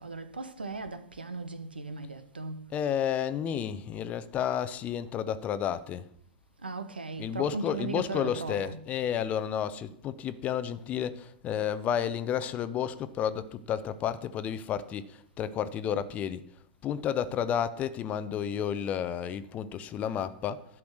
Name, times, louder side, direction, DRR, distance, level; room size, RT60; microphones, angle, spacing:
voice 1, 0.0-2.7 6.6-8.9, right 3 dB, 80° right, 1.0 m, -37 dB
voice 2, 2.7-6.1 7.2-16.4 16.8-20.7, left 9 dB, 25° left, 0.7 m, -31 dB
11.5 x 6.0 x 6.4 m
figure-of-eight pair, 100°, 5 cm